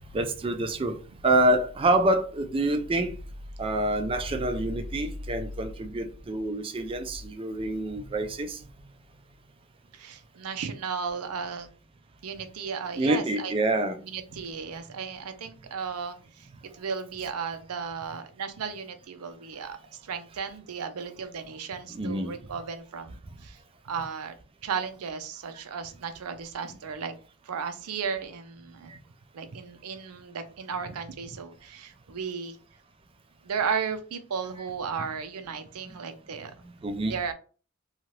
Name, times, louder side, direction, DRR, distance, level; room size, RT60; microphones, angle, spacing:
voice 1, 0.1-1.0 1.2-3.2 3.6-8.6 13.0-14.0 21.9-22.3 35.9-36.0 36.8-37.2, right 1 dB, 25° right, 0.3 m, -26 dB
voice 2, 9.9-11.7 12.2-13.5 14.0-23.6 23.8-24.3 24.6-27.1 27.4-28.9 29.3-32.6 33.4-36.6 37.1-37.3, right 6 dB, 80° right, 0.5 m, -35 dB
2.8 x 2.3 x 3.0 m
head